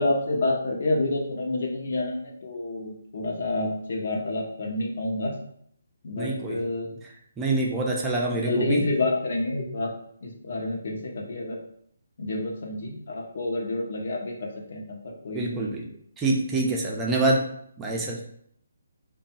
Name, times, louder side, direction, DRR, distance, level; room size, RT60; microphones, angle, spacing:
voice 1, 0.0-5.3 6.0-6.9 8.3-9.9 10.2-11.6 12.2-15.0 15.2-15.8, left 2 dB, 55° left, -1 dB, 0.8 m, -28 dB
voice 2, 6.2-6.6 7.4-8.9 15.3-15.9 16.2-17.4 17.8-18.2, right 2 dB, 15° right, -2 dB, 0.6 m, -26 dB
3.4 x 2.3 x 4.1 m, 0.68 s
figure-of-eight pair, 150°, 0 cm